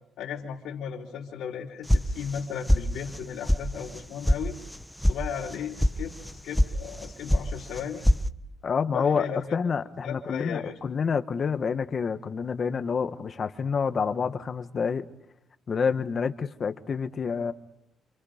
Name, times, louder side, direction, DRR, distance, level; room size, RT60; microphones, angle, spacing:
voice 1, 0.2-4.6 5.0-8.0 8.9-9.6 10.0-10.8, left 8 dB, 80° left, 3.8 m, -36 dB
sound 1, 1.9-2.4 2.7-3.2 3.5-3.6 3.9-4.4 4.7-5.2 5.4-5.9 6.2-6.7 7.0-7.5 7.7-8.2, left 1 dB, 5° left, 1.2 m, -22 dB
voice 2, 8.6-9.3 9.5-15.1 15.7-17.5, left 6 dB, 45° left, 1.6 m, -28 dB
28.5 x 28.0 x 5.2 m
cardioid pair, 90°, 0 cm